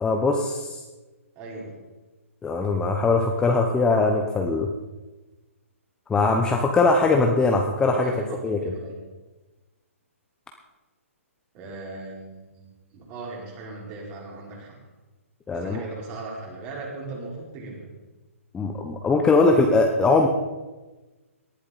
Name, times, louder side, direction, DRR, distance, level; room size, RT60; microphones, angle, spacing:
voice 1, 0.0-0.8 2.4-4.7 6.1-8.2 8.4-8.6 15.5-15.8 18.5-20.3, left 3 dB, 10° left, 2 dB, 1.0 m, -21 dB
voice 2, 1.3-1.7 7.9-9.0 11.5-14.8 15.5-17.9, right 3 dB, 30° right, -2 dB, 4.6 m, -38 dB
18.5 x 11.5 x 4.2 m, 1.2 s
figure-of-eight pair, 135°, 8 cm